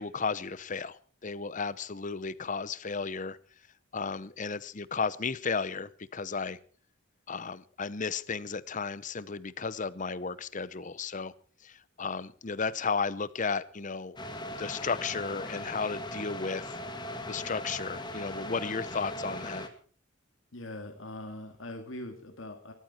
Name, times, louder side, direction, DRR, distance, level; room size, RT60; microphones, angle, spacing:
voice 1, 0.0-3.4 3.9-6.6 7.3-11.3 11.6-16.8 17.3-19.7, left 5 dB, 40° left, 18 dB, 0.8 m, -34 dB
sound 1, 14.2-19.7, left 1 dB, 20° left, 1.9 m, -39 dB
voice 2, 20.5-22.7, left 1 dB, 70° left, 5 dB, 2.2 m, -42 dB
20.5 x 14.0 x 4.4 m, 0.43 s
head